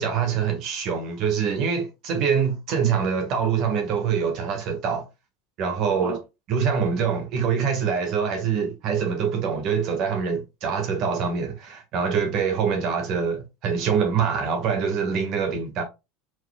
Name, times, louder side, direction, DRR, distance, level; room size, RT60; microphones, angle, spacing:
voice 1, 0.0-5.1 5.6-6.2 6.5-15.8, right 6 dB, 45° right, 1.5 m, -24 dB
4.7 x 4.2 x 2.3 m
supercardioid pair, 165°, 0 cm